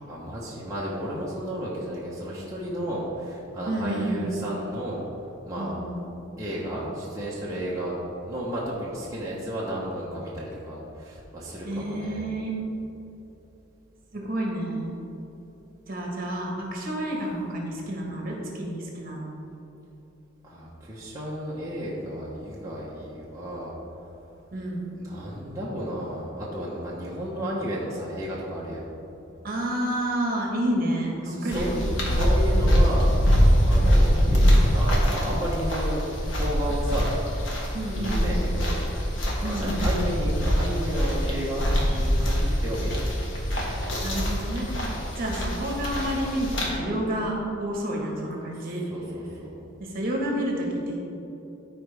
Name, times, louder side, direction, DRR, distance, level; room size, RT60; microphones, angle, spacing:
voice 1, 0.1-5.0 5.4-5.8 6.4-12.2 20.4-23.7 24.9-28.8 31.2-33.1 33.6-37.6 37.9-38.8 39.3-43.0 44.9-45.2 48.5-49.5, equal, 15° right, -7 dB, 1.0 m, -33 dB
voice 2, 3.7-4.3 5.5-6.0 11.6-12.6 14.1-14.9 15.9-19.3 24.5-24.9 29.4-31.8 37.7-38.4 39.4-40.1 44.0-44.7 45.1-48.8 49.8-51.0, right 1 dB, 45° right, -1 dB, 1.5 m, -29 dB
sound 1, 31.5-46.7, equal, 65° left, 1.4 m, -23 dB
14.0 x 4.7 x 3.4 m, 3.0 s
head